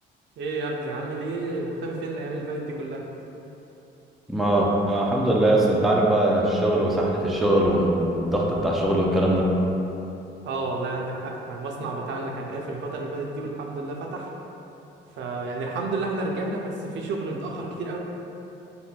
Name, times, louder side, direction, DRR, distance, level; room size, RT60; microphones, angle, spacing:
voice 1, 0.4-3.0 10.4-14.3 15.2-18.0, right 2 dB, 70° right, 0 dB, 0.4 m, -31 dB
voice 2, 4.3-9.6, right 1 dB, ahead, -3 dB, 0.3 m, -21 dB
3.2 x 2.6 x 2.2 m, 2.9 s
cardioid pair, 90°, 20 cm